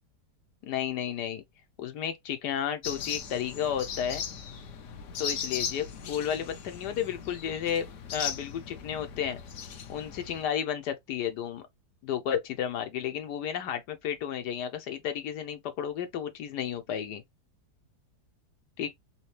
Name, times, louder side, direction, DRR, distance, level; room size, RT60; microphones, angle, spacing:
voice 1, 0.6-1.4 1.8-4.3 5.2-9.4 9.9-11.6 12.0-17.2 18.8-18.9, left 9 dB, 80° left, 1.3 m, -32 dB
sound 1, 2.8-10.4, left 7 dB, 60° left, 0.9 m, -38 dB
3.6 x 2.9 x 3.1 m
omnidirectional pair, 1.8 m